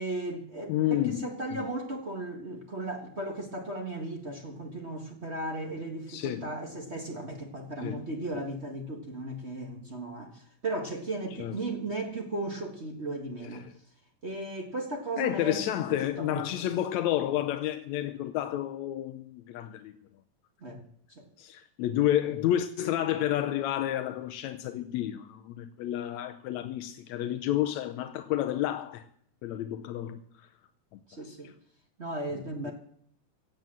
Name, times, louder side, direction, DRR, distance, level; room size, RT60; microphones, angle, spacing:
voice 1, 0.0-13.7 14.2-15.6 15.9-16.5 20.6-20.8 21.1-21.2 31.1-31.5 32.0-32.7, right 2 dB, 45° right, 0.9 m, -36 dB
voice 2, 0.7-1.6 6.1-6.5 7.8-8.1 11.4-11.6 13.5-13.6 15.2-19.9 21.4-29.1 29.4-30.5 30.9-31.0 32.6-32.7, left 12 dB, 75° left, 1.7 m, -30 dB
17.0 x 7.9 x 7.7 m
omnidirectional pair, 3.9 m